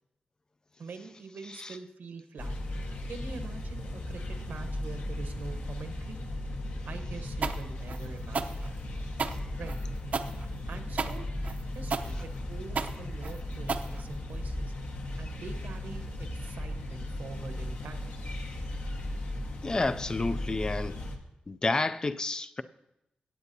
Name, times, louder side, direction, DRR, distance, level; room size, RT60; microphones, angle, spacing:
voice 1, 0.8-2.5 3.1-6.2 6.8-8.8 9.6-9.8 10.7-11.2 11.7-14.7 15.2-18.1, right 4 dB, 80° right, 1.1 m, -44 dB
sound 1, 2.4-21.2, left 1 dB, 65° left, 1.3 m, -36 dB
sound 2, 7.4-14.5, right 5 dB, 55° right, 0.6 m, -34 dB
voice 2, 19.6-21.0 21.5-22.6, left 3 dB, 25° left, 0.3 m, -30 dB
17.5 x 8.2 x 2.7 m
wide cardioid pair, 135°, 3 cm